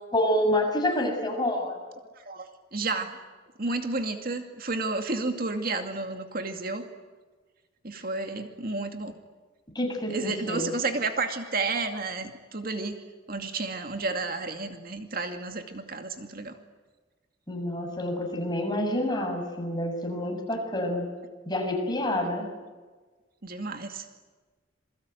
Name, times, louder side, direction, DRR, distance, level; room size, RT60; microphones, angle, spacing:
voice 1, 0.1-1.7 9.7-10.7 17.5-21.1 21.5-22.4, left 1 dB, 20° left, 3 dB, 6.8 m, -28 dB
voice 2, 2.2-3.2 3.6-6.8 7.8-9.1 10.1-16.5 23.4-24.1, right 3 dB, 50° right, 5 dB, 2.4 m, -31 dB
28.0 x 22.5 x 9.2 m, 1.3 s
head